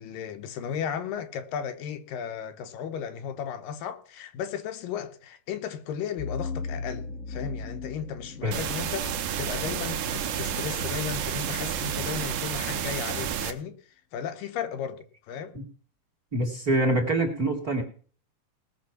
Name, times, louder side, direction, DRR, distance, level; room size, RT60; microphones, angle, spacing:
voice 1, 0.0-9.1 9.4-13.8 14.1-15.5, left 8 dB, 80° left, 2.8 m, -35 dB
sound 1, 6.2-11.0, left 4 dB, 45° left, 0.9 m, -38 dB
sound 2, 8.5-13.5, right 8 dB, 70° right, 2.4 m, -30 dB
voice 2, 16.3-17.8, right 1 dB, 30° right, 2.0 m, -25 dB
19.0 x 6.6 x 5.9 m
omnidirectional pair, 4.0 m